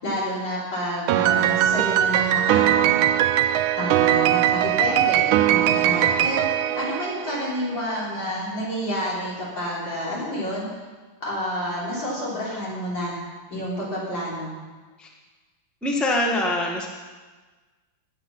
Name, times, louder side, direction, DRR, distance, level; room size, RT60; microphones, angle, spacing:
voice 1, 0.0-3.0 3.8-6.5 6.8-10.7 11.3-13.2 13.5-14.5, equal, 65° left, -7 dB, 5.4 m, -29 dB
Piano, 1.1-7.6, right 12 dB, 80° right, 1.4 m, -20 dB
voice 2, 15.8-16.9, left 1 dB, ahead, -1 dB, 1.4 m, -24 dB
19.0 x 8.0 x 5.8 m, 1.3 s
omnidirectional pair, 2.2 m